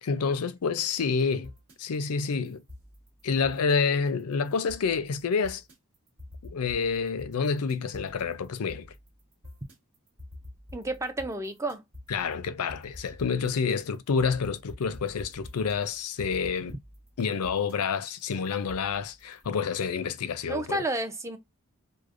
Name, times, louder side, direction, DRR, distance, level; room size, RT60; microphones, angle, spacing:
voice 1, 0.0-1.5 1.8-2.6 3.2-5.6 6.4-8.9 12.1-16.8 17.2-20.8, left 5 dB, 85° left, 0.5 m, -28 dB
sound 1, 1.1-19.5, left 1 dB, 75° right, 1.3 m, -48 dB
voice 2, 10.7-11.8 20.5-21.4, right 1 dB, 15° right, 0.4 m, -31 dB
4.8 x 2.1 x 2.5 m
head